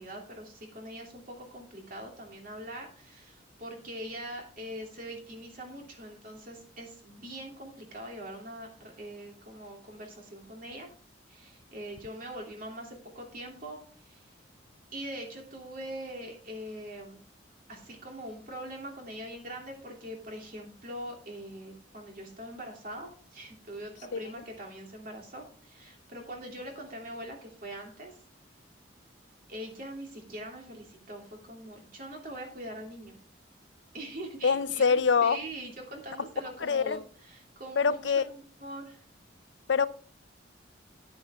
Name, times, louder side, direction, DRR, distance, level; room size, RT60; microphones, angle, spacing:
voice 1, 0.0-10.9 11.3-14.3 14.9-17.3 17.7-28.2 29.5-33.2 33.9-39.0, right 1 dB, 50° right, 2.8 m, -43 dB
voice 2, 34.4-35.4 36.6-37.0 37.8-38.2 39.7-39.9, left 5 dB, 70° left, 0.6 m, -24 dB
9.4 x 9.3 x 3.5 m
head